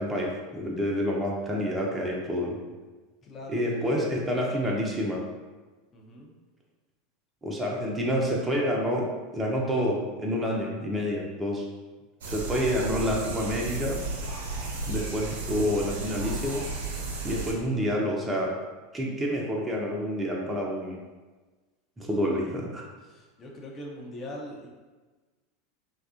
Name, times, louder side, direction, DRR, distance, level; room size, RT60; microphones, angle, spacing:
voice 1, 0.0-2.6 3.5-5.2 7.4-9.1 9.3-11.6 12.3-14.0 14.9-16.6 17.2-18.5 18.9-21.0 22.0-22.9, equal, 15° right, -2 dB, 0.5 m, -28 dB
voice 2, 3.2-4.2 5.9-6.3 22.1-24.7, left 1 dB, 30° left, -2 dB, 0.6 m, -43 dB
sound 1, 12.2-17.5, right 3 dB, 65° right, 0.5 m, -33 dB
2.7 x 2.3 x 2.5 m, 1.3 s
figure-of-eight pair, 80°, 0 cm